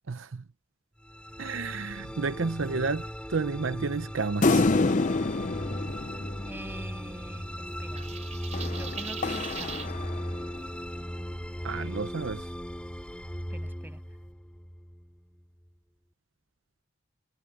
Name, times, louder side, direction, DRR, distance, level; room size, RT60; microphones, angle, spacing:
voice 1, 0.1-0.4 1.4-4.7 11.6-12.5, right 4 dB, 70° right, 0.7 m, -31 dB
sound 1, 1.0-15.4, equal, 5° left, 5.9 m, -37 dB
sound 2, 4.4-7.1 8.5-10.6, left 3 dB, 40° left, 0.6 m, -28 dB
voice 2, 6.4-8.1 8.7-9.9 13.5-14.0, right 1 dB, 10° right, 7.7 m, -44 dB
sound 3, 7.9-9.9, right 7 dB, 35° right, 3.3 m, -40 dB
head